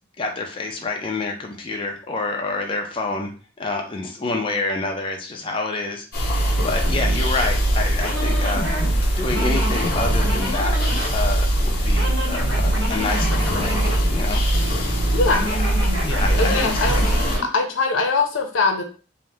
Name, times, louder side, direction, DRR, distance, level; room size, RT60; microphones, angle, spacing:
voice 1, 0.2-3.3 3.6-10.8 11.1-13.8 14.1-14.4 15.3-15.7 16.0-17.1, left 3 dB, 25° left, 1 dB, 0.4 m, -28 dB
sound 1, 6.1-17.4, right 1 dB, 55° left, 0.8 m, -22 dB
sound 2, 6.6-17.5, equal, 70° right, 1.0 m, -27 dB
voice 2, 15.1-15.5 16.4-17.1 17.4-18.8, left 3 dB, 90° left, 4 dB, 0.6 m, -22 dB
2.8 x 2.0 x 3.4 m, 0.37 s
head